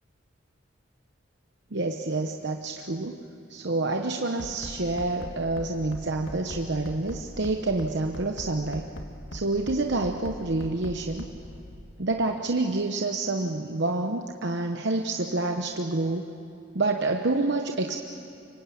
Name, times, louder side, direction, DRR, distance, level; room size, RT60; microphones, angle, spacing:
voice 1, 1.7-3.2 3.5-8.9 9.3-11.3 12.0-16.3 16.7-18.0, right 2 dB, 60° right, 4 dB, 1.0 m, -28 dB
Bass drum, 4.4-11.8, equal, 70° left, 2.3 m, -39 dB
25.5 x 24.0 x 8.6 m, 2.5 s
head